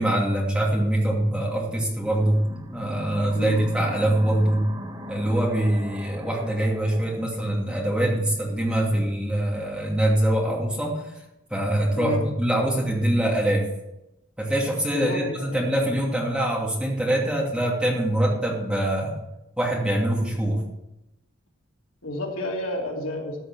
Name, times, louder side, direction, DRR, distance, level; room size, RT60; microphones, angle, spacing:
voice 1, 0.0-2.4 2.7-4.7 5.1-11.0 11.5-13.7 14.4-19.1 19.6-20.6, right 1 dB, 5° right, -3 dB, 2.6 m, -24 dB
sound 1, 2.0-7.2, equal, 20° right, 1.6 m, -39 dB
voice 2, 11.9-12.3 14.9-15.7 22.0-23.4, left 1 dB, 85° left, -1 dB, 2.9 m, -30 dB
13.5 x 6.2 x 7.7 m, 0.92 s
head